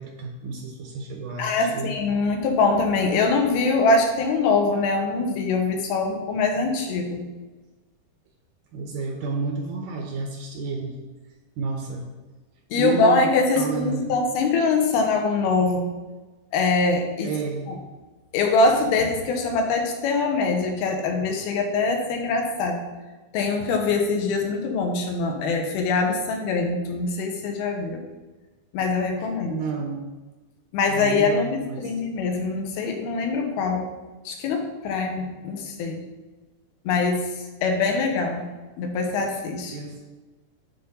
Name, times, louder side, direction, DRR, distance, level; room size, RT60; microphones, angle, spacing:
voice 1, 0.0-2.0 8.7-11.0 11.6-12.1 12.8-14.1 17.2-17.7 29.4-30.1 30.9-31.9 37.9-38.0 39.7-40.0, right 4 dB, 75° right, 2 dB, 2.1 m, -31 dB
voice 2, 1.4-7.2 12.7-15.9 16.5-17.3 17.7-17.8 18.3-22.8 23.3-28.0 28.7-29.6 30.7-33.9 34.3-36.0 36.9-38.5 38.8-39.8, left 3 dB, 80° left, 3 dB, 2.9 m, -23 dB
9.3 x 3.9 x 5.3 m, 1.2 s
omnidirectional pair, 4.4 m